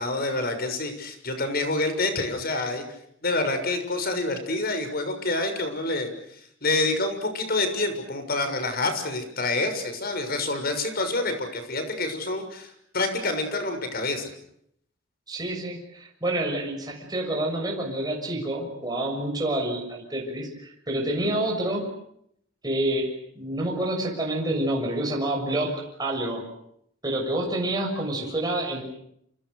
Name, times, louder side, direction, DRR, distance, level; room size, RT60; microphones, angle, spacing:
voice 1, 0.0-2.8 3.2-14.3, left 2 dB, 50° left, 8 dB, 6.7 m, -27 dB
voice 2, 15.3-21.9 22.6-26.4 27.0-28.8, right 1 dB, 20° right, 0 dB, 6.8 m, -28 dB
28.5 x 28.5 x 6.6 m, 0.72 s
head